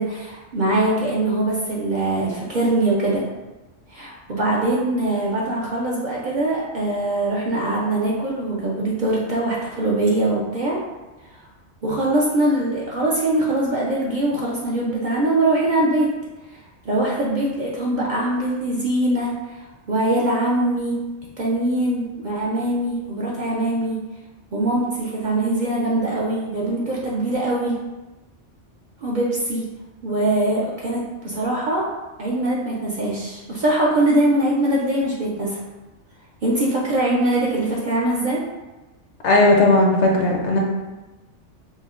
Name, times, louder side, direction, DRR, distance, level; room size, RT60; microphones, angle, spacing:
voice 1, 0.0-3.2 3.9-10.8 11.3-11.4 11.8-16.1 16.8-21.0 21.4-24.0 24.5-27.8 29.0-29.6 30.0-31.9 32.2-35.6 36.4-38.4, right 1 dB, 55° right, -5 dB, 0.6 m, -22 dB
voice 2, 39.2-40.6, left 2 dB, 75° left, 0 dB, 0.9 m, -16 dB
5.4 x 2.1 x 2.4 m, 1.1 s
omnidirectional pair, 1.2 m